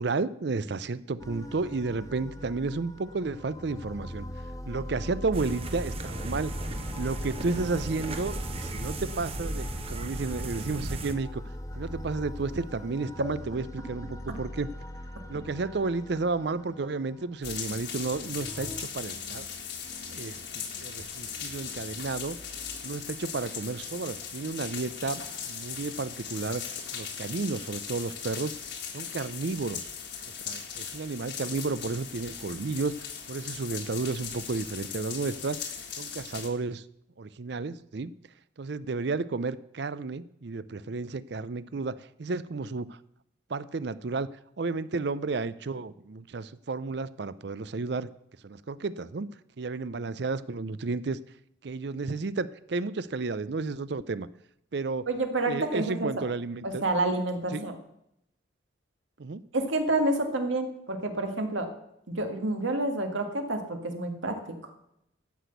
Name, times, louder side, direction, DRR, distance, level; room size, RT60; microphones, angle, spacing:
voice 1, 0.0-4.3 4.7-6.5 7.0-11.4 11.8-14.7 15.3-19.5 20.1-22.4 22.8-26.6 26.9-28.5 28.9-29.9 30.3-36.8 37.2-38.1 38.6-43.0 43.5-44.3 44.6-48.1 48.4-51.2 51.6-54.3 54.7-55.1 55.4-56.8 57.5-57.7 59.2-59.4, right 3 dB, 55° right, 17 dB, 0.5 m, -32 dB
sound 1, 1.2-18.8, equal, 15° left, 0.7 m, -41 dB
sound 2, 5.3-11.1, right 2 dB, 30° right, 0.9 m, -36 dB
sound 3, 17.4-36.5, left 7 dB, 60° left, 1.7 m, -39 dB
voice 2, 55.1-56.1 56.6-57.8 59.5-61.7 62.1-64.4, right 2 dB, 75° right, 5 dB, 2.0 m, -28 dB
13.0 x 6.0 x 8.1 m, 0.79 s
head